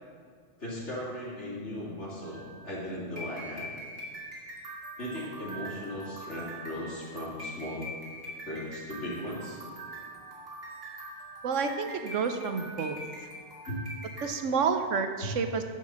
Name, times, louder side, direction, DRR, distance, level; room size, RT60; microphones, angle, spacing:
voice 1, 0.6-3.7 5.0-7.9 8.5-9.6 13.7-13.9, left 1 dB, 70° left, -5 dB, 3.0 m, -37 dB
sound 1, 2.2-14.3, right 1 dB, 55° right, 2.5 m, -43 dB
voice 2, 11.4-13.0 14.2-15.6, right 5 dB, 85° right, 7 dB, 1.1 m, -29 dB
10.5 x 5.8 x 6.3 m, 2.1 s
omnidirectional pair, 1.2 m